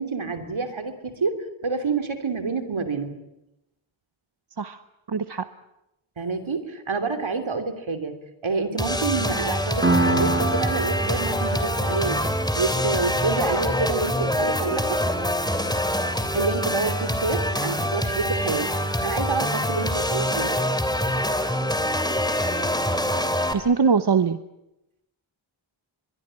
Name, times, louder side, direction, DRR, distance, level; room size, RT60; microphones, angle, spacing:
voice 1, 0.0-3.1 6.2-8.1 8.4-12.2 12.6-15.0 16.3-18.7 19.0-20.5, right 4 dB, 70° right, 8 dB, 3.2 m, -28 dB
voice 2, 5.1-5.5 23.5-24.4, right 5 dB, 55° right, 11 dB, 1.0 m, -22 dB
sound 1, 8.8-23.5, equal, 10° left, 3.0 m, -25 dB
Piano, 9.8-17.2, right 2 dB, 25° right, 2.1 m, -29 dB
23.0 x 22.0 x 9.0 m, 0.90 s
wide cardioid pair, 65°, 49 cm